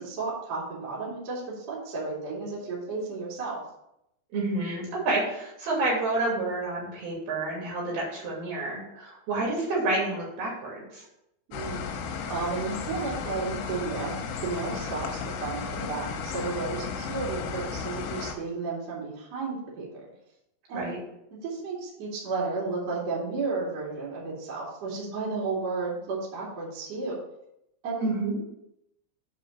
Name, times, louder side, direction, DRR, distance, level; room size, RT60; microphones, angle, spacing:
voice 1, 0.0-3.6 11.5-11.9 12.3-20.0 20.7-20.9 21.3-27.1 27.8-28.1, right 4 dB, 40° right, -6 dB, 2.9 m, -33 dB
voice 2, 4.3-11.0 20.7-21.0 28.0-28.3, right 2 dB, 55° right, -4 dB, 3.9 m, -29 dB
sound 1, 11.5-18.3, left 5 dB, 80° left, 3.3 m, -34 dB
8.4 x 4.5 x 6.5 m, 0.82 s
omnidirectional pair, 5.9 m